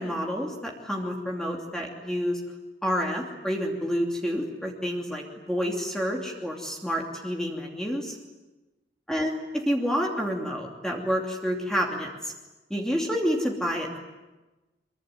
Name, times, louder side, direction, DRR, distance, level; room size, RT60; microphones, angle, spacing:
voice 1, 0.0-2.4 2.8-8.2 9.1-9.4 9.7-12.3 12.7-14.0, equal, 5° left, -1 dB, 2.8 m, -29 dB
24.5 x 23.0 x 9.7 m, 1.1 s
head